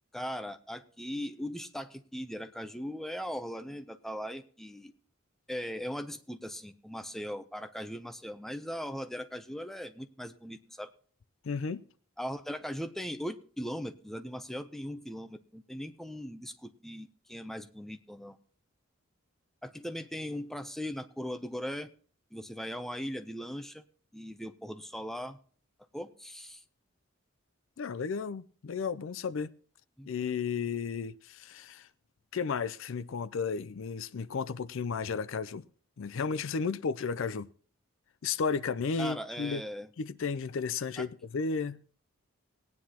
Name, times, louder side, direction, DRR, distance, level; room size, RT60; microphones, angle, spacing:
voice 1, 0.1-4.9 5.5-10.9 12.2-18.4 19.6-21.9 22.3-23.8 24.1-25.4 25.9-26.6 30.0-30.1 39.0-39.9 41.0-41.1, equal, ahead, 0.5 m, -39 dB
voice 2, 11.4-11.8 27.8-29.5 30.1-31.9 32.3-35.6 36.0-37.5 38.2-39.6 40.0-41.8, left 5 dB, 65° left, 0.4 m, -33 dB
18.5 x 9.6 x 2.9 m
head